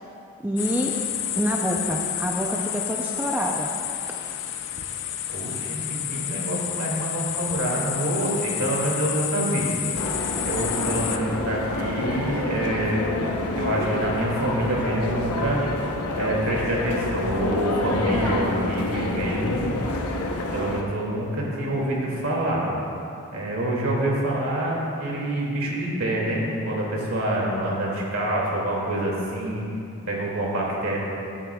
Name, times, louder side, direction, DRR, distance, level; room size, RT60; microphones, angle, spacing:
voice 1, 0.4-0.9 1.3-3.7, equal, 10° right, -1 dB, 0.5 m, -26 dB
sound 1, 0.6-11.2, left 10 dB, 55° left, 0.5 m, -30 dB
voice 2, 5.3-9.7 10.4-13.0 13.6-15.6 16.2-19.6 20.5-22.7 23.3-29.7 30.1-31.0, right 1 dB, 65° right, -4 dB, 2.4 m, -26 dB
sound 2, 9.9-20.8, left 2 dB, 85° left, 0.9 m, -28 dB
16.5 x 9.6 x 2.3 m, 2.7 s
head